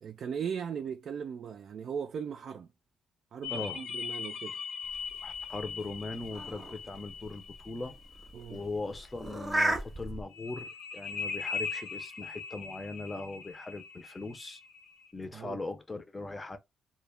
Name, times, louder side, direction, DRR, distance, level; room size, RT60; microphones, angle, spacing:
voice 1, 0.0-2.7 3.3-4.6 8.3-8.6 15.3-15.6, right 7 dB, 60° right, 0.3 m, -38 dB
sound 1, 3.4-9.0 10.3-15.1, left 5 dB, 70° left, 0.5 m, -40 dB
voice 2, 3.5-3.8 5.2-8.0 8.5-14.6 15.1-16.6, left 3 dB, 20° left, 0.5 m, -39 dB
sound 2, 4.9-10.2, right 1 dB, 10° right, 0.8 m, -36 dB
2.2 x 2.0 x 3.2 m
cardioid pair, 90°, 0 cm